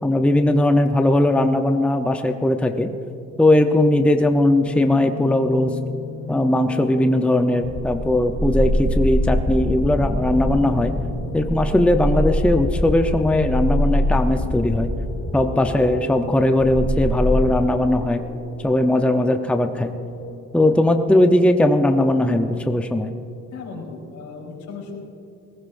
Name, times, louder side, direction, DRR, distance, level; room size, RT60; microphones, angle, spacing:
voice 1, 0.0-2.9 3.4-5.8 6.3-10.9 11.3-14.9 15.3-18.2 18.6-19.9 20.5-23.1, left 1 dB, 5° left, 6 dB, 0.7 m, -19 dB
sound 1, 4.7-20.3, left 4 dB, 45° left, 4.1 m, -36 dB
sound 2, 7.7-17.5, equal, 20° right, 2.9 m, -24 dB
voice 2, 23.5-25.0, left 4 dB, 75° left, -1 dB, 3.9 m, -36 dB
19.5 x 17.5 x 2.6 m, 2.7 s
cardioid pair, 90°, 30 cm